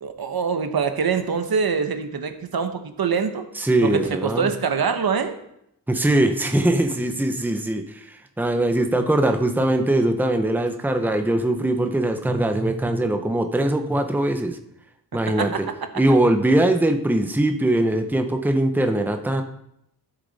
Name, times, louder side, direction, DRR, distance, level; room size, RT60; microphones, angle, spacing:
voice 1, 0.0-3.4 3.8-5.4 15.3-15.7, right 6 dB, 75° right, 7 dB, 1.0 m, -24 dB
voice 2, 3.6-4.5 5.9-8.1 8.4-14.6 15.1-15.5 16.0-19.4, right 1 dB, 5° right, 6 dB, 0.7 m, -21 dB
13.0 x 6.7 x 4.1 m, 0.77 s
wide cardioid pair, 130°, 37 cm